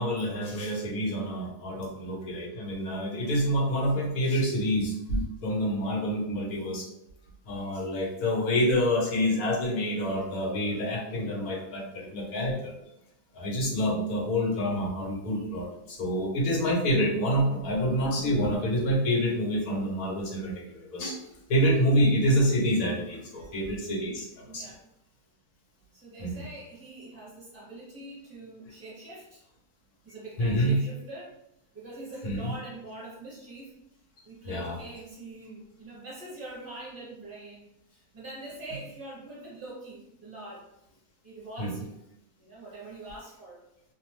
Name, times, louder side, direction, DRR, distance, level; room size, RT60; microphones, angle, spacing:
voice 1, 0.0-6.9 7.5-12.7 13.3-21.2 21.5-24.3 24.5-24.6 26.2-26.3 30.4-30.8 32.2-32.5 34.5-34.8 41.6-41.7, equal, 85° left, -1 dB, 1.2 m, -27 dB
voice 2, 24.5-24.8 25.9-29.4 30.0-31.3 31.7-33.7 34.2-37.6 37.9-40.7 41.2-42.0 42.4-43.6, right 2 dB, 40° right, -6 dB, 1.0 m, -44 dB
2.8 x 2.0 x 2.9 m, 0.83 s
omnidirectional pair, 1.5 m